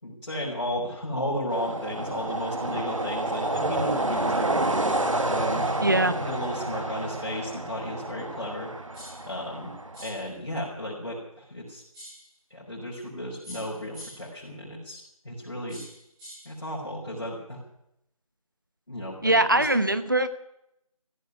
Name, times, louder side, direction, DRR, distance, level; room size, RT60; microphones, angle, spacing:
voice 1, 0.0-4.7 5.3-8.7 9.2-9.7 10.0-11.8 12.5-15.8 16.5-17.6 18.9-19.7, equal, 50° left, -5 dB, 5.5 m, -34 dB
sound 1, 1.5-10.0, right 2 dB, 60° right, 2.2 m, -29 dB
voice 2, 5.8-6.1 19.2-20.3, right 1 dB, 35° right, 12 dB, 1.1 m, -22 dB
sound 2, 8.9-9.3 9.9-10.3 11.9-12.3 13.4-14.3 15.7-16.5, equal, 5° right, 3.1 m, -45 dB
16.0 x 8.5 x 9.7 m, 0.78 s
figure-of-eight pair, 180°, 19 cm